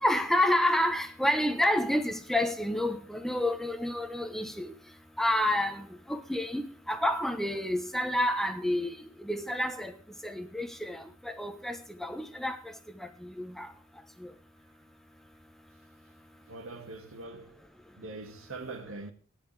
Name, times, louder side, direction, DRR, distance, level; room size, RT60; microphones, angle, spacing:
voice 1, 0.0-4.7 5.2-6.6 6.9-8.9 9.2-9.9 10.2-12.6 13.2-13.7 14.2-14.3, left 1 dB, ahead, 1.1 m, -29 dB
voice 2, 16.5-17.6 18.0-19.1, right 3 dB, 70° right, 2.1 m, -42 dB
17.0 x 10.5 x 3.4 m
head